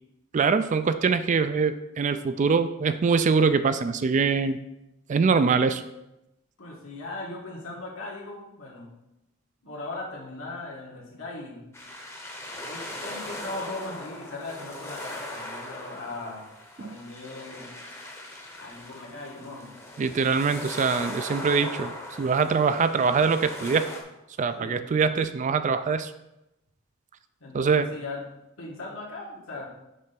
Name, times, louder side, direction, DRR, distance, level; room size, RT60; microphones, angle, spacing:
voice 1, 0.3-4.6 5.1-5.8 16.8-17.0 20.0-21.9 22.2-23.9 24.4-26.1 27.5-27.9, right 5 dB, 35° right, 11 dB, 0.3 m, -23 dB
voice 2, 6.6-8.9 9.6-11.6 12.6-16.5 16.8-17.8 18.6-19.8 24.6-24.9 27.4-28.2 28.6-29.7, left 2 dB, 80° left, -4 dB, 2.0 m, -39 dB
sound 1, 11.7-24.0, left 1 dB, 15° left, 0.8 m, -39 dB
6.2 x 3.4 x 5.8 m, 0.89 s
head